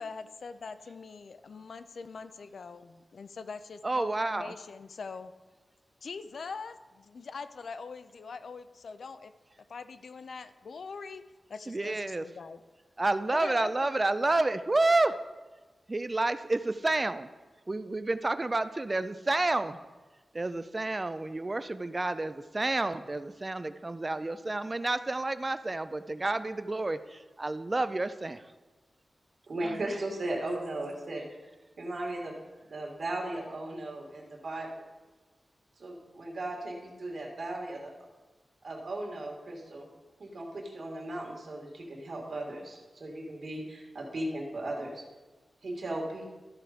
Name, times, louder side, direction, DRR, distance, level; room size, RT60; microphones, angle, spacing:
voice 1, 0.0-5.3 6.0-9.3 9.7-11.2 11.5-12.6 13.4-13.9, left 5 dB, 65° left, 12 dB, 0.4 m, -43 dB
voice 2, 3.8-4.5 11.7-12.3 13.0-15.2 15.9-17.3 17.7-19.8 20.3-28.5 29.6-30.0, right 2 dB, 25° right, 12 dB, 0.3 m, -30 dB
voice 3, 29.5-31.3 31.8-32.4 32.7-34.9 35.8-37.9 38.6-39.9 40.2-45.0 45.6-46.2, right 1 dB, 60° right, -1 dB, 1.7 m, -37 dB
13.0 x 4.5 x 5.0 m, 1.2 s
wide cardioid pair, 175°, 0 cm